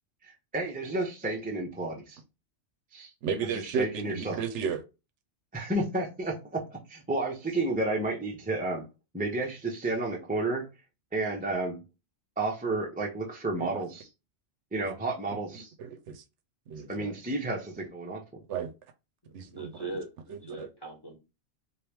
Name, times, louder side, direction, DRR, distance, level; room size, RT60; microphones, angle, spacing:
voice 1, 0.2-2.2 2.9-3.1 3.5-4.4 5.5-8.8 9.1-10.7 11.1-11.8 12.4-14.1 14.7-15.7 16.9-18.2, right 2 dB, 10° right, 0.5 m, -31 dB
voice 2, 3.2-4.8 13.6-13.8 15.8-16.2 16.7-17.1 18.5-18.7 19.3-19.9 20.3-20.7, right 6 dB, 75° right, 0.9 m, -33 dB
voice 3, 19.2-21.1, right 2 dB, 20° left, 0.9 m, -41 dB
3.0 x 2.6 x 3.3 m
omnidirectional pair, 1.3 m